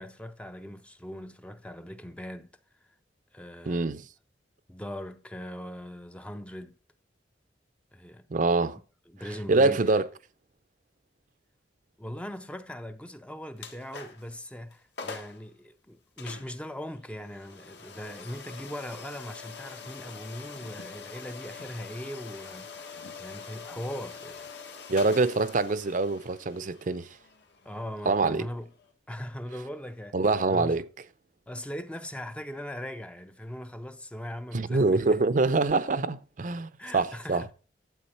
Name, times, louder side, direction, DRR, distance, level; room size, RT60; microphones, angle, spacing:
voice 1, 0.0-2.5 3.3-3.9 4.7-6.7 7.9-8.3 9.1-9.8 12.0-24.5 27.6-28.7 29.1-30.2 30.5-30.8 31.5-35.2 36.8-37.5, equal, 5° left, 0.5 m, -40 dB
voice 2, 3.7-4.1 8.3-8.8 9.5-10.1 24.9-27.1 28.1-28.5 30.1-30.8 34.5-37.4, right 3 dB, 45° right, 0.6 m, -25 dB
sound 1, 13.6-14.3 14.7-14.8 15.0-15.4 16.2-28.9, left 5 dB, 70° left, 1.6 m, -45 dB
12.0 x 7.8 x 4.2 m
head